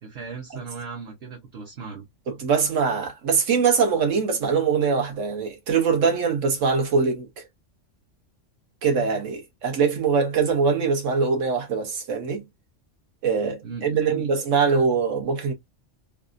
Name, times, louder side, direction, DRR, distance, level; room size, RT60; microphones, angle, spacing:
voice 1, 0.0-2.0 13.6-14.3, right 5 dB, 60° right, 1.0 m, -37 dB
voice 2, 2.3-7.3 8.8-12.4 13.2-15.5, right 5 dB, 85° right, 1.3 m, -22 dB
3.3 x 2.3 x 2.5 m
omnidirectional pair, 1.3 m